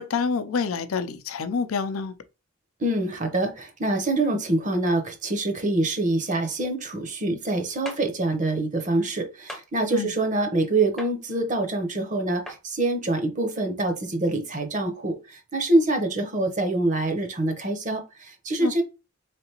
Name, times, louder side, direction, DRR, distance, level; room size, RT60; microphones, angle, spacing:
voice 1, 0.0-2.1 9.9-10.1 18.6-18.8, left 5 dB, 85° left, 0.5 m, -27 dB
voice 2, 2.8-18.8, right 2 dB, 35° right, 0.8 m, -25 dB
sound 1, 7.9-8.0 9.5-9.7 11.0-11.1 12.5-12.6, equal, ahead, 0.6 m, -37 dB
3.8 x 3.3 x 2.8 m
head